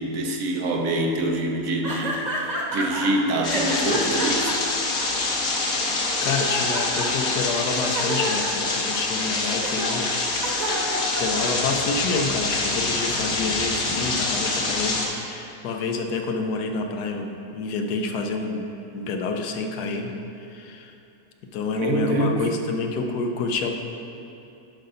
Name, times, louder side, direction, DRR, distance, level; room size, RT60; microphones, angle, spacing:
voice 1, 0.0-4.5 21.7-22.5, right 1 dB, 65° right, 3 dB, 1.1 m, -25 dB
sound 1, 1.8-3.1 3.4-5.6 6.0-7.3 7.7-11.9, right 1 dB, 30° right, 1.1 m, -30 dB
sound 2, 3.4-15.1, left 3 dB, 70° left, 1.6 m, -26 dB
voice 2, 6.2-10.1 10.4-10.8 11.2-20.9 21.5-23.7, left 4 dB, 90° left, 4 dB, 1.3 m, -28 dB
11.5 x 3.8 x 5.5 m, 2.8 s
omnidirectional pair, 1.6 m